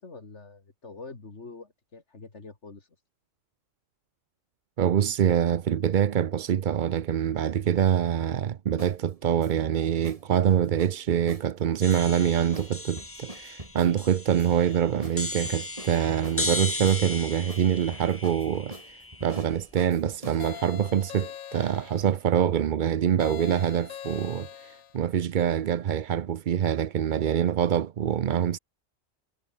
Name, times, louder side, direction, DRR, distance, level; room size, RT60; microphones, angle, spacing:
voice 1, 0.0-2.9, left 3 dB, 60° left, 3.0 m, -45 dB
voice 2, 4.8-28.6, right 9 dB, 50° right, 0.6 m, -25 dB
sound 1, 8.8-9.0 9.4-9.7 10.0-10.2 10.5-11.5 11.9-12.2 12.5-12.7 13.0-13.9 14.3-14.7 15.0-15.2 15.4-16.4 16.9-17.2 17.5-17.6 17.9-20.6, right 1 dB, 25° right, 4.4 m, -42 dB
sound 2, 11.8-19.7, left 2 dB, 15° left, 0.6 m, -36 dB
sound 3, 20.4-22.2 23.2-25.0, left 10 dB, 85° left, 1.3 m, -42 dB
omnidirectional pair, 1.4 m